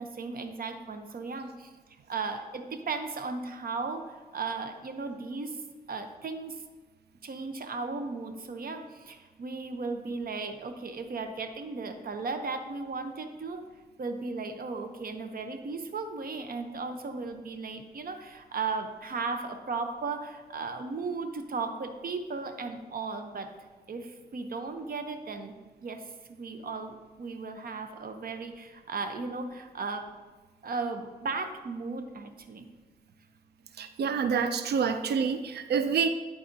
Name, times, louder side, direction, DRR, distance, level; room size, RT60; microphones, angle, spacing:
voice 1, 0.0-1.7 2.1-5.6 5.9-6.6 7.2-13.6 14.0-25.5 25.8-26.0 26.3-30.1 30.6-32.7, right 4 dB, 65° right, 7 dB, 0.7 m, -36 dB
voice 2, 33.8-36.1, right 6 dB, 85° right, 9 dB, 0.4 m, -27 dB
11.0 x 4.1 x 2.7 m, 1.3 s
cardioid pair, 65°, 17 cm